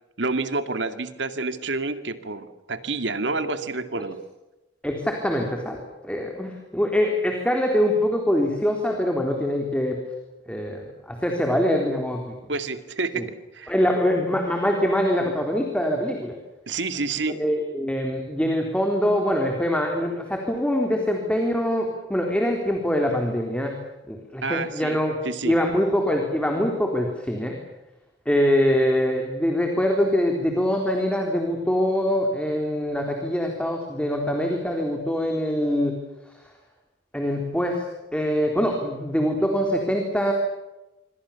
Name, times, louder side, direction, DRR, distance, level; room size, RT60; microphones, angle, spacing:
voice 1, 0.2-4.2 12.5-13.7 16.7-17.4 24.4-25.0 25.2-25.6, right 3 dB, 75° right, 9 dB, 2.4 m, -28 dB
voice 2, 4.8-10.0 10.5-12.4 13.1-13.3 13.7-16.4 17.3-23.8 24.1-25.1 25.4-27.6 28.3-36.0 37.1-37.8 38.1-40.3, equal, 5° left, 2 dB, 3.7 m, -24 dB
27.0 x 25.5 x 7.2 m, 1.0 s
head